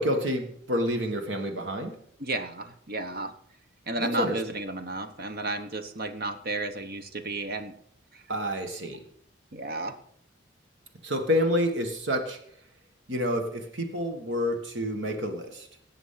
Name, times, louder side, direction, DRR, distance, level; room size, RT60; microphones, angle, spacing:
voice 1, 0.0-2.0 4.0-4.4 8.3-9.0 11.0-12.4 13.1-15.7, equal, 65° right, 6 dB, 1.6 m, -28 dB
voice 2, 2.2-3.3 3.9-7.7 8.1-8.2 9.5-9.9, right 2 dB, 50° right, 9 dB, 1.0 m, -33 dB
18.0 x 7.2 x 5.7 m, 0.65 s
head